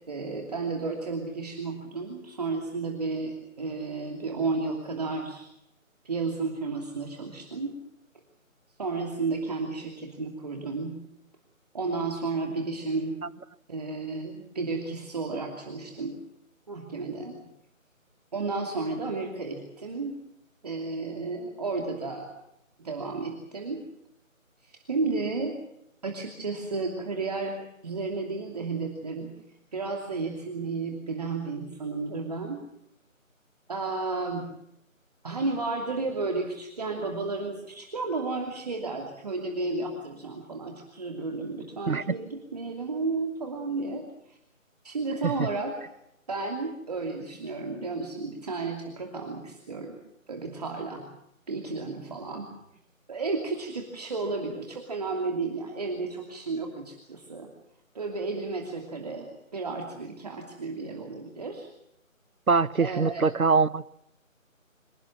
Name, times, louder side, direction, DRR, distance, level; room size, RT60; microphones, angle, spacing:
voice 1, 0.1-5.5 6.0-7.8 8.8-11.0 11.7-13.2 13.7-16.2 16.7-17.4 18.3-20.2 20.6-22.3 22.8-23.8 24.6-25.6 26.0-29.3 29.7-32.6 33.7-34.5 35.2-44.4 44.8-45.9 46.3-50.0 50.3-51.1 51.5-52.5 53.1-57.5 57.9-61.7 62.8-63.3, right 3 dB, 30° right, 2 dB, 2.8 m, -32 dB
voice 2, 62.5-63.9, right 4 dB, 85° right, 21 dB, 1.0 m, -23 dB
25.5 x 18.5 x 7.4 m, 0.79 s
figure-of-eight pair, 160°, 41 cm